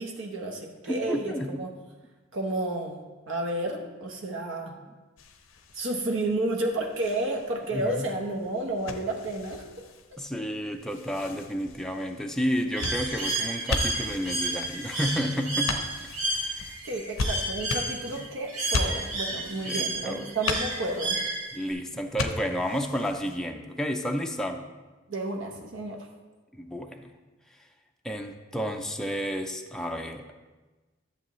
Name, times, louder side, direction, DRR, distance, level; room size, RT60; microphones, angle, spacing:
voice 1, 0.0-1.7 2.3-4.8 5.7-9.6 16.9-21.2 25.1-26.1, right 2 dB, 65° right, 2 dB, 1.0 m, -31 dB
voice 2, 0.9-1.6 7.7-8.1 10.2-15.7 16.0-16.7 18.2-18.3 19.7-20.2 21.5-24.6 26.5-27.1 28.0-30.2, equal, 5° left, 3 dB, 0.4 m, -31 dB
sound 1, 5.2-23.4, left 3 dB, 80° left, 0.7 m, -37 dB
Bird, 12.8-21.7, right 2 dB, 90° right, 2.5 m, -31 dB
11.5 x 7.0 x 3.1 m, 1.2 s
head